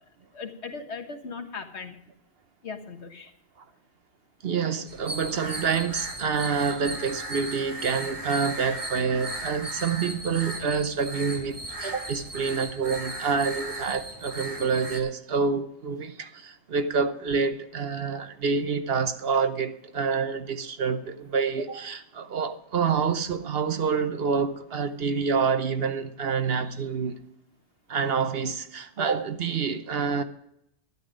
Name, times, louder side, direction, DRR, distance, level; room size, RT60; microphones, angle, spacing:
voice 1, 0.3-2.0 2.6-3.3, left 5 dB, 65° left, 1.6 m, -38 dB
voice 2, 4.4-27.2 27.9-30.2, right 5 dB, 60° right, 1.0 m, -27 dB
sound 1, 4.9-15.0, right 1 dB, 30° right, 1.6 m, -36 dB
12.5 x 10.5 x 5.1 m
omnidirectional pair, 1.2 m